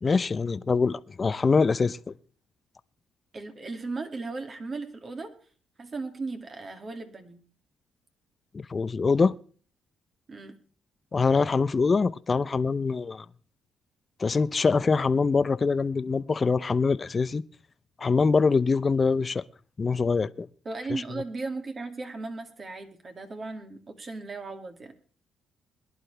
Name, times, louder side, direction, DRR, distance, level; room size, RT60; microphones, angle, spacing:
voice 1, 0.0-2.0 8.5-9.4 11.1-13.2 14.2-17.4 18.0-19.4 19.8-20.5 20.9-21.0, left 4 dB, 35° left, 0.6 m, -24 dB
voice 2, 3.3-5.3 5.8-7.4 10.3-10.6 20.6-24.9, right 3 dB, 40° right, 2.4 m, -36 dB
21.5 x 11.0 x 3.4 m
cardioid pair, 90°, 0 cm